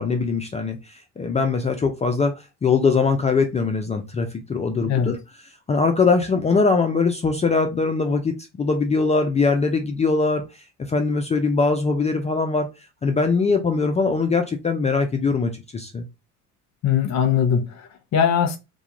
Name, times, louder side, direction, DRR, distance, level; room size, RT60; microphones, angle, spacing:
voice 1, 0.0-5.2 5.7-12.7 13.0-16.1, left 4 dB, 20° left, 0.4 m, -22 dB
voice 2, 16.8-18.6, left 8 dB, 45° left, 0.8 m, -21 dB
2.3 x 2.2 x 2.8 m
supercardioid pair, 75°, 38 cm